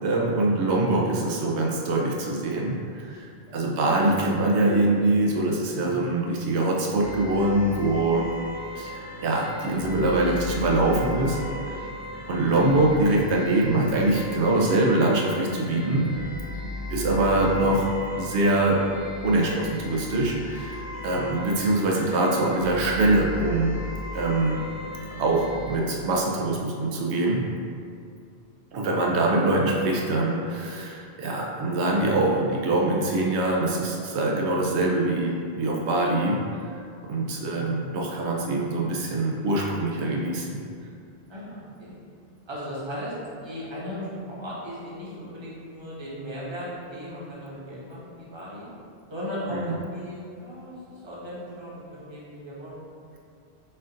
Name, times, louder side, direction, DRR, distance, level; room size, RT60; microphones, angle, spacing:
voice 1, 0.0-3.3 3.5-8.3 8.8-11.4 11.7-11.8 12.3-16.1 16.9-17.9 18.1-18.8 19.2-23.7 24.1-24.6 25.2-27.4 28.7-36.4 36.6-36.7 37.1-40.6 49.5-49.7, right 2 dB, 85° right, -2 dB, 0.9 m, -23 dB
voice 2, 3.5-3.8 5.7-6.2 21.1-21.5 37.5-37.9 41.3-42.0 42.5-43.1 43.4-48.7 49.1-52.8, equal, 25° right, -7 dB, 0.9 m, -37 dB
sound 1, 7.0-25.8, left 2 dB, 65° left, 0.9 m, -37 dB
4.3 x 2.5 x 3.8 m, 2.4 s
omnidirectional pair, 1.1 m